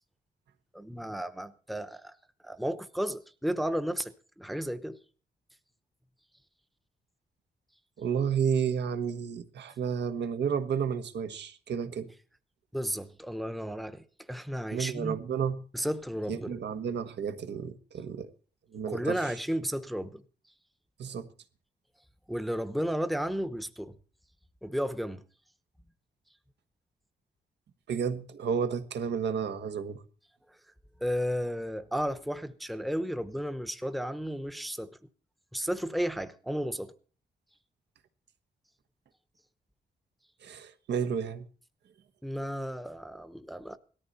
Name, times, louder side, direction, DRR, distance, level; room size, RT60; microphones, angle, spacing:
voice 1, 0.7-2.1 2.4-5.0 12.7-15.2 15.7-16.5 18.9-20.2 22.3-23.9 24.6-25.2 31.0-35.0 35.5-36.9 42.2-43.8, equal, ahead, 0.8 m, -33 dB
voice 2, 8.0-12.1 14.7-15.6 16.3-18.3 18.7-19.2 21.0-21.3 27.9-30.0 40.4-41.5, right 7 dB, 80° right, 1.5 m, -31 dB
18.5 x 13.5 x 4.2 m
wide cardioid pair, 145°, 18 cm